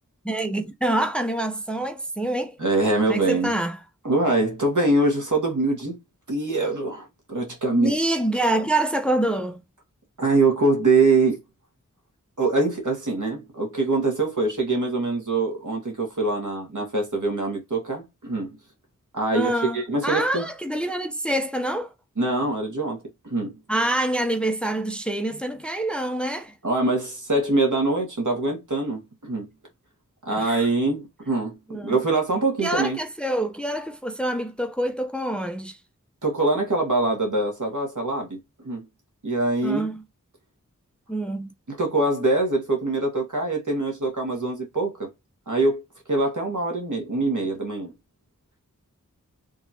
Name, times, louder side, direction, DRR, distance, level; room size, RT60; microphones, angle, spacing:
voice 1, 0.2-2.6 3.1-3.8 7.7-9.6 19.3-21.9 23.7-26.5 30.3-30.7 31.7-32.0 32.6-35.8 39.6-40.0 41.1-41.5, right 1 dB, 5° left, 0.8 m, -26 dB
voice 2, 2.6-3.5 4.0-6.0 6.3-7.9 10.2-11.4 12.4-18.5 19.1-20.5 22.2-23.6 26.6-29.5 30.3-31.5 31.8-33.0 36.2-38.8 39.2-39.9 41.7-45.1 45.5-45.8 46.1-47.9, right 2 dB, 70° right, 1.9 m, -24 dB
3.9 x 3.5 x 2.9 m
wide cardioid pair, 40°, 32 cm